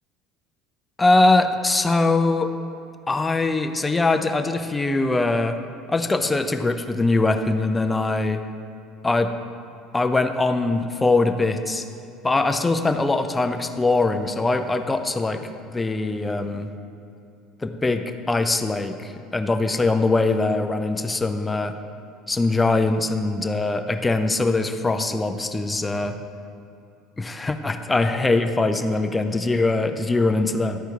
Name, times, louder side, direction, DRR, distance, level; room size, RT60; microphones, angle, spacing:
voice 1, 1.0-2.5 3.1-5.6 5.9-8.4 9.0-9.3 9.9-11.8 12.2-16.7 17.6-21.7 22.3-26.2 27.2-30.8, left 2 dB, 15° left, 7 dB, 0.5 m, -22 dB
11.5 x 4.4 x 3.5 m, 2.7 s
hypercardioid pair, 75°, 0 cm